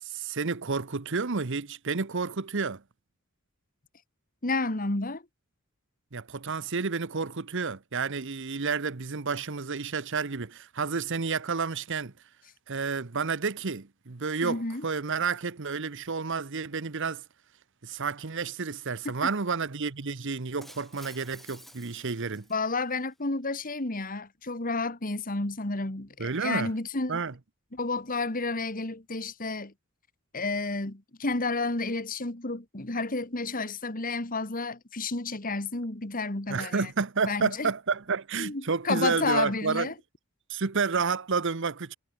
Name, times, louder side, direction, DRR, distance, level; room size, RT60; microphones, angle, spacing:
voice 1, 0.0-2.8 6.1-12.1 12.7-17.2 17.8-22.5 26.2-26.7 27.1-27.3 36.5-39.9 40.5-42.0, right 5 dB, 60° right, 1.0 m, -30 dB
voice 2, 4.4-5.2 14.4-14.8 19.1-19.2 22.5-27.2 27.7-29.7 30.3-36.9 37.3-37.7 38.4-39.9, left 3 dB, 40° left, 2.1 m, -31 dB
Shatter, 20.6-23.0, equal, ahead, 4.6 m, -52 dB
head